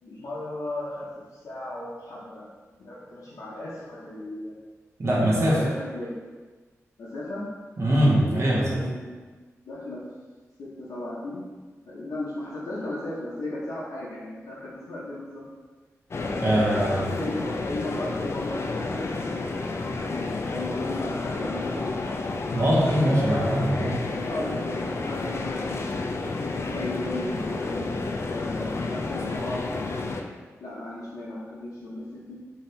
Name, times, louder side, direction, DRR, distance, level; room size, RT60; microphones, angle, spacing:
voice 1, 0.0-2.5 2.8-4.5 5.2-6.1 7.0-7.4 8.1-9.2 9.7-10.0 10.6-11.4 11.9-15.5 16.9-22.1 22.8-23.5 24.2-30.1 30.6-32.3, left 1 dB, 80° left, -7 dB, 0.8 m, -36 dB
voice 2, 5.0-5.6 7.8-8.8 16.4-17.1 22.5-24.0, right 1 dB, 55° right, -5 dB, 0.9 m, -22 dB
sound 1, 16.1-30.2, left 3 dB, 50° left, 0.3 m, -30 dB
2.8 x 2.7 x 3.2 m, 1.4 s
cardioid pair, 50°, 6 cm